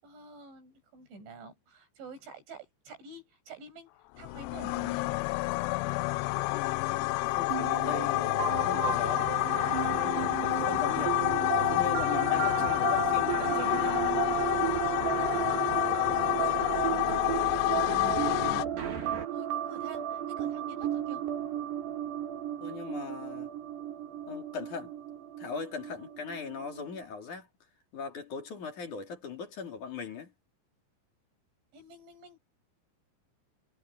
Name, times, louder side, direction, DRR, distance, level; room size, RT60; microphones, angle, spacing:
voice 1, 0.0-5.0 15.5-21.2 31.7-32.4, right 3 dB, 85° right, 9.9 m, -48 dB
sound 1, 4.2-18.7, left 20 dB, 85° left, 2.4 m, -28 dB
voice 2, 6.5-9.3 9.9-14.0 22.6-23.5 24.3-24.9 25.4-27.5 27.9-30.3, left 6 dB, 45° left, 4.3 m, -39 dB
sound 2, 7.5-27.0, right 11 dB, 65° right, 4.7 m, -34 dB
sound 3, 8.4-19.3, right 5 dB, 50° right, 5.3 m, -42 dB
omnidirectional pair, 5.2 m